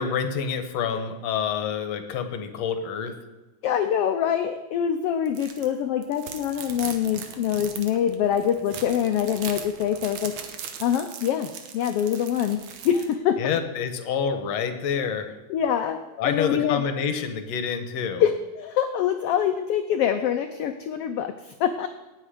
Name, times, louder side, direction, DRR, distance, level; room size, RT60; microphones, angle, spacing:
voice 1, 0.0-3.1 13.4-15.3 16.2-18.2, left 7 dB, 70° left, 8 dB, 2.0 m, -27 dB
voice 2, 3.6-10.3 10.8-13.4 15.5-16.8 18.2-21.9, left 9 dB, 90° left, 8 dB, 1.3 m, -25 dB
sound 1, 5.3-5.7 6.0-13.1, right 7 dB, 70° right, 2.3 m, -39 dB
18.0 x 7.8 x 5.0 m, 1.1 s
omnidirectional pair, 3.4 m